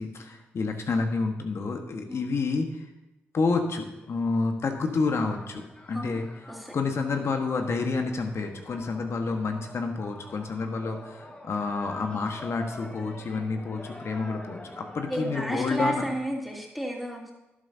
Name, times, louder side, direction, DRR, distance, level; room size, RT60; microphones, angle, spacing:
voice 1, 0.0-2.8 3.3-5.6 5.9-6.3 6.7-16.0, left 4 dB, 60° left, 4 dB, 1.5 m, -29 dB
sound 1, 4.8-16.2, left 1 dB, 25° left, 1.6 m, -46 dB
voice 2, 15.1-17.3, equal, ahead, -3 dB, 3.4 m, -32 dB
12.0 x 11.5 x 2.8 m, 0.95 s
supercardioid pair, 40°, 5 cm